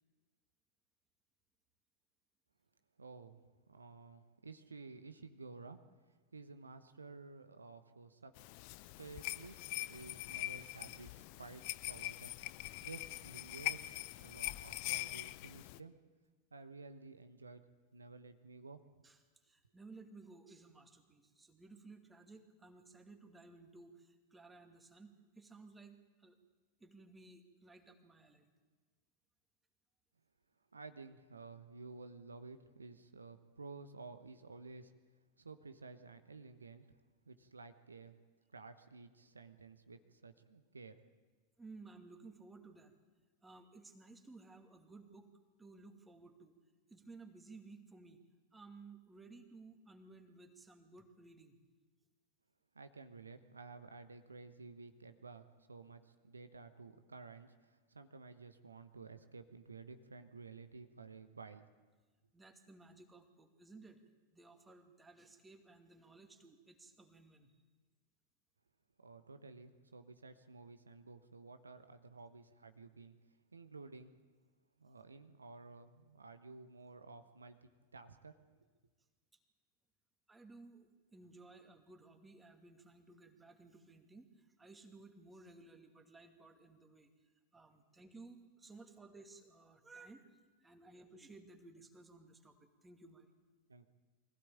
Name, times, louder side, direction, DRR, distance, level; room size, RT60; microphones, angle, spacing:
voice 1, 3.0-3.4 3.7-5.8 6.1-8.3 9.0-16.0 16.5-17.6 17.9-18.8 30.7-34.9 35.4-36.9 37.2-38.2 38.5-41.0 52.7-61.6 69.0-73.1 73.5-74.1 74.8-78.4 93.7-93.9, right 4 dB, 75° right, 10 dB, 1.1 m, -53 dB
sound 1, 8.4-15.8, left 19 dB, 45° left, 0.6 m, -43 dB
voice 2, 19.0-26.4 26.8-28.5 41.6-42.9 43.4-45.3 45.6-46.6 46.9-48.2 48.5-51.6 62.3-64.0 64.3-67.5 80.3-87.1 87.5-93.3, right 3 dB, 10° right, 5 dB, 2.4 m, -57 dB
24.0 x 16.0 x 8.8 m, 1.4 s
figure-of-eight pair, 90°, 0 cm